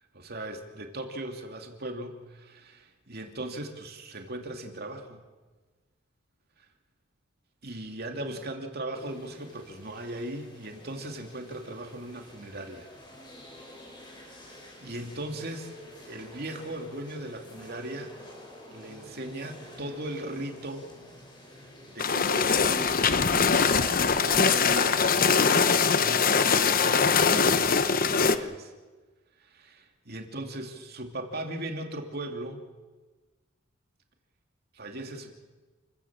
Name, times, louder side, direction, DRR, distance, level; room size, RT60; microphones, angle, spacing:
voice 1, 0.1-5.2 7.6-12.9 14.1-15.7 16.1-18.1 18.7-20.9 21.9-23.1 24.0-25.0 25.7-28.7 29.4-32.6 34.7-35.3, right 1 dB, 50° right, 4 dB, 2.8 m, -38 dB
sound 1, 8.9-25.7, left 1 dB, 25° left, 5.9 m, -50 dB
sound 2, 22.0-28.4, left 5 dB, 45° left, 1.0 m, -22 dB
29.0 x 16.0 x 7.5 m, 1.3 s
head